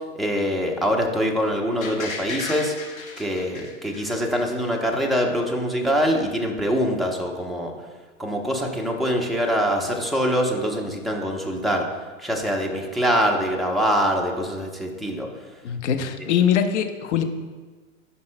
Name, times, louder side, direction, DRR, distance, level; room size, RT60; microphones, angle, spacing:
voice 1, 0.2-2.7 3.2-7.7 8.2-11.9 12.2-15.3 15.8-15.9, equal, ahead, 0 dB, 0.7 m, -24 dB
sound 1, 1.8-4.7 5.1-5.2, left 4 dB, 85° left, 1.9 m, -35 dB
voice 2, 15.6-17.2, left 8 dB, 60° left, 7 dB, 0.9 m, -22 dB
14.0 x 5.5 x 2.2 m, 1.4 s
hypercardioid pair, 110°, 40 cm